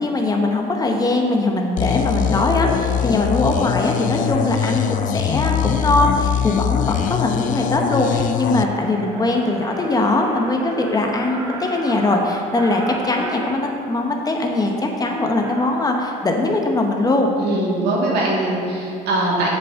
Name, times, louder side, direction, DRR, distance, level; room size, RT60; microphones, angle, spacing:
voice 1, 0.0-17.3, left 2 dB, 20° left, 2 dB, 1.0 m, -21 dB
sound 1, 1.8-8.6, left 9 dB, 50° left, 0.4 m, -22 dB
sound 2, 4.0-4.1 4.6-4.9 5.4-5.8 6.3-6.4 6.6-16.0, right 1 dB, 20° right, 1.4 m, -36 dB
voice 2, 17.4-19.5, right 2 dB, 70° right, -4 dB, 2.0 m, -21 dB
7.9 x 6.9 x 3.7 m, 2.5 s
cardioid pair, 110°, 17 cm